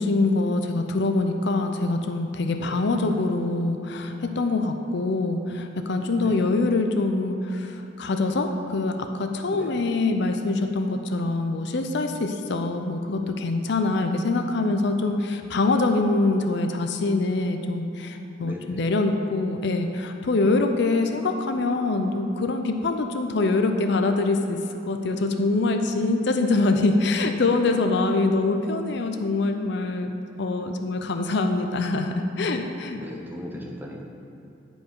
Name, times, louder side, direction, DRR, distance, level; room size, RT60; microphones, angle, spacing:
voice 1, 0.0-24.6 24.8-30.1 30.4-33.0, left 3 dB, 65° left, 6 dB, 0.6 m, -24 dB
voice 2, 18.4-18.8 33.0-34.0, left 1 dB, 10° right, -1 dB, 0.8 m, -38 dB
10.5 x 5.3 x 4.7 m, 2.8 s
head